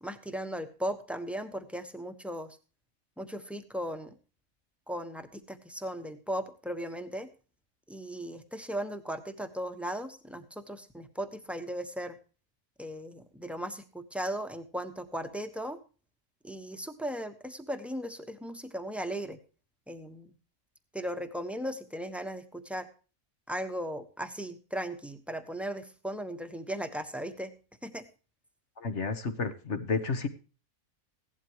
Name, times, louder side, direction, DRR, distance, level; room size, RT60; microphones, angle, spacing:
voice 1, 0.0-2.6 3.2-4.2 4.9-7.3 7.9-12.2 12.8-15.8 16.4-19.4 19.9-20.3 20.9-22.9 23.5-27.5 27.8-28.1, equal, ahead, 8 dB, 1.2 m, -37 dB
voice 2, 28.8-30.3, left 4 dB, 55° left, 10 dB, 1.6 m, -31 dB
16.5 x 12.0 x 3.1 m, 0.36 s
omnidirectional pair, 1.5 m